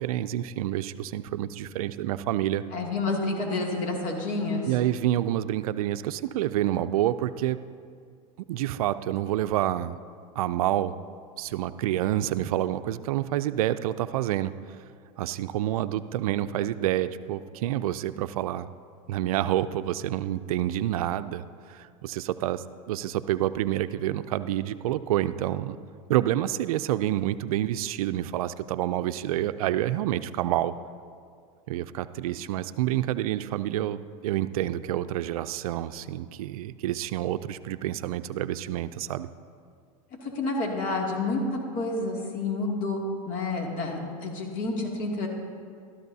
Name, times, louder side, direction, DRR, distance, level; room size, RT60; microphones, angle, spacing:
voice 1, 0.0-2.6 4.7-7.6 8.5-10.0 10.4-10.9 11.4-14.5 15.2-18.7 19.1-25.8 26.1-30.7 31.7-39.3, right 13 dB, 80° right, 13 dB, 0.4 m, -28 dB
voice 2, 2.7-4.7 40.2-41.4 41.7-45.3, left 3 dB, 45° left, -1 dB, 2.5 m, -29 dB
14.0 x 13.0 x 2.8 m, 2.2 s
supercardioid pair, 110°, 18 cm